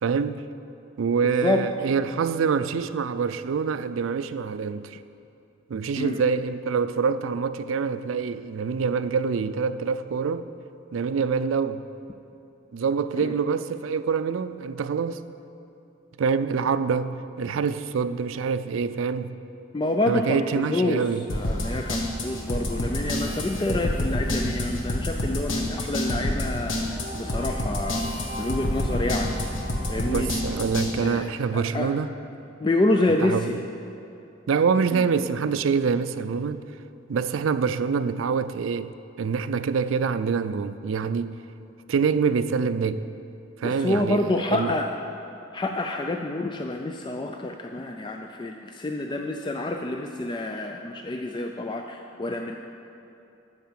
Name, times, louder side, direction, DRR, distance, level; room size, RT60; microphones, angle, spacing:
voice 1, 0.0-0.4 1.0-5.0 5.7-10.5 10.9-11.8 12.7-15.2 16.2-19.3 20.1-21.2 30.1-32.1 33.2-33.6 34.5-36.6 37.1-38.9 39.2-41.4 41.9-43.0 43.6-44.7, right 5 dB, 85° right, 0.4 m, -25 dB
voice 2, 1.2-1.7 6.0-6.2 13.2-13.3 19.7-29.3 29.9-30.3 30.9-31.9 32.6-33.6 34.9-35.0 43.6-44.9 45.5-52.6, left 2 dB, 25° left, 0.4 m, -28 dB
sound 1, 21.3-30.9, left 1 dB, 80° left, 1.4 m, -28 dB
12.5 x 4.8 x 7.6 m
head